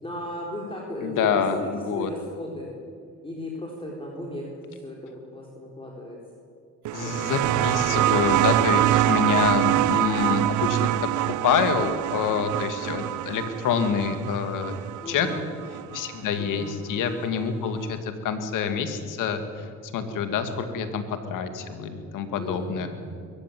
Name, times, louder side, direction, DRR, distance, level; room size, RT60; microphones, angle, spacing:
voice 1, 0.0-2.7 3.2-4.4 4.7-6.2 7.0-7.3 7.6-8.1 15.0-15.5 16.4-16.7 22.4-23.2, left 1 dB, 15° left, -2 dB, 4.1 m, -36 dB
voice 2, 1.0-2.1 6.9-14.7 15.1-15.3 15.9-22.9, left 6 dB, 80° left, 7 dB, 2.3 m, -27 dB
sound 1, 6.9-16.1 17.3-17.4, right 15 dB, 70° right, 0.5 m, -25 dB
22.0 x 15.0 x 9.4 m, 2.2 s
cardioid pair, 85°, 31 cm